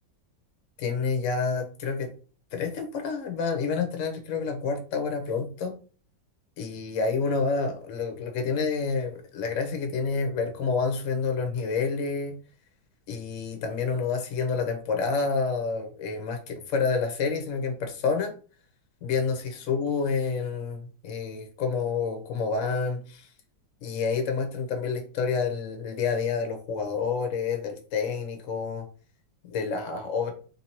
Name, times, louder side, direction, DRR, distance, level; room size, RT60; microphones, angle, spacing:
voice 1, 0.8-2.1 2.5-5.7 6.6-12.4 13.1-18.3 19.0-23.3 23.8-28.8 29.5-30.3, left 5 dB, 55° left, 5 dB, 1.0 m, -28 dB
3.0 x 2.8 x 4.3 m, 0.38 s
omnidirectional pair, 2.1 m